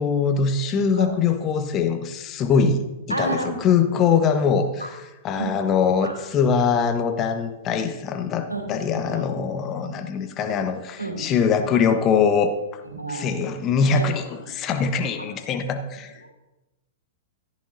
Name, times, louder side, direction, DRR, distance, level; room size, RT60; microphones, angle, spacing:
voice 1, 0.0-5.0 5.2-12.8 13.1-16.2, left 6 dB, 30° left, 7 dB, 1.0 m, -22 dB
voice 2, 3.1-3.6 4.8-4.9 5.4-5.5 6.0-6.2 8.5-8.6 9.0-9.2 11.0-11.2 11.7-11.8 12.8-13.3 13.9-14.1 15.2-15.3 16.2-16.3, right 2 dB, 85° right, 2 dB, 2.7 m, -30 dB
15.0 x 10.5 x 2.7 m, 1.0 s
figure-of-eight pair, 105°, 0 cm